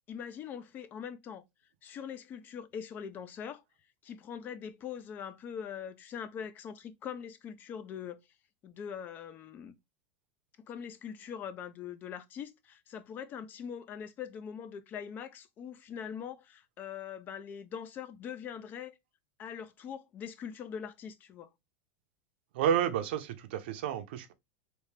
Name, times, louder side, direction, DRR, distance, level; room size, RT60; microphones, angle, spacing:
voice 1, 0.1-1.4 1.8-3.6 4.0-8.2 8.6-9.8 10.7-19.0 19.4-21.5, left 8 dB, 30° left, 0.5 m, -42 dB
voice 2, 22.5-24.3, right 9 dB, 75° right, 0.7 m, -30 dB
3.4 x 2.7 x 3.3 m
supercardioid pair, 140°, 6 cm